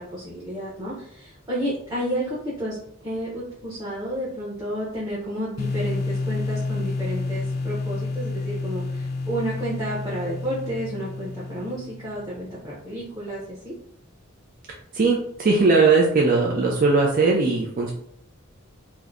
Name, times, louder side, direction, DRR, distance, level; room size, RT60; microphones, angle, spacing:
voice 1, 0.0-2.8 3.0-13.7, right 1 dB, 15° right, -9 dB, 1.0 m, -31 dB
sound 1, 5.6-12.4, left 3 dB, 50° left, 0.4 m, -29 dB
voice 2, 14.9-17.9, right 4 dB, 45° right, -1 dB, 0.5 m, -19 dB
3.0 x 2.1 x 3.7 m, 0.69 s
head